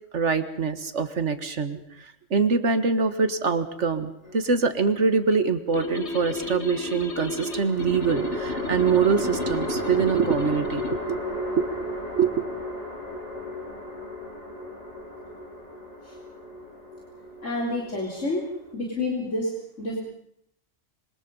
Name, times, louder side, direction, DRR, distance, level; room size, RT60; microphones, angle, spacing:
voice 1, 0.1-1.8 2.3-10.8 11.1-11.2 11.5-11.7 12.1-12.4, right 5 dB, 70° right, 10 dB, 1.9 m, -24 dB
sound 1, 4.2-5.1 7.4-18.7, left 1 dB, 30° left, 4.4 m, -34 dB
sound 2, 5.7-11.0, left 2 dB, 60° left, 2.3 m, -33 dB
voice 2, 17.4-18.4 18.7-19.5 19.8-20.0, left 2 dB, 80° left, -2 dB, 4.0 m, -28 dB
26.5 x 24.5 x 5.5 m, 0.72 s
omnidirectional pair, 1.3 m